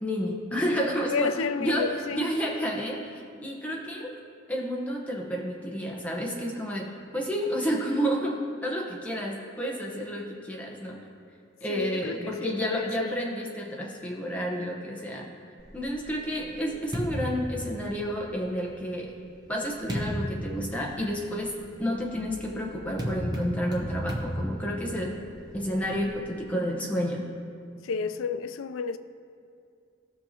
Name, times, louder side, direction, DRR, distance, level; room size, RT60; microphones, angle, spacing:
voice 1, 0.0-1.3 1.6-4.1 4.5-11.0 11.6-15.3 15.7-19.1 19.5-25.2 25.5-27.4, equal, 5° left, 1.0 m, -30 dB
voice 2, 1.1-2.3 11.7-13.1 27.8-29.0, left 5 dB, 85° left, 0.4 m, -31 dB
sound 1, 15.6-18.4 19.1-26.2, equal, 20° right, 0.8 m, -35 dB
16.0 x 6.4 x 2.9 m
head